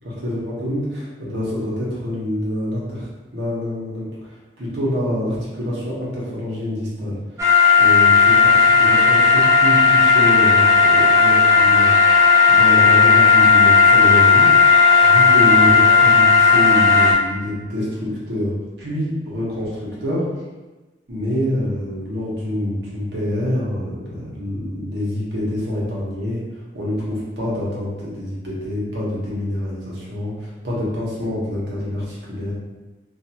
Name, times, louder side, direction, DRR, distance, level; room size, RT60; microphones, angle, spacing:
voice 1, 0.0-7.2 7.7-12.2 12.5-14.6 15.0-20.3 21.1-26.4 26.7-32.5, left 1 dB, 70° right, -6 dB, 1.0 m, -26 dB
sound 1, 7.4-17.1, left 5 dB, 20° right, 0.4 m, -13 dB
2.6 x 2.4 x 2.7 m, 1.2 s
head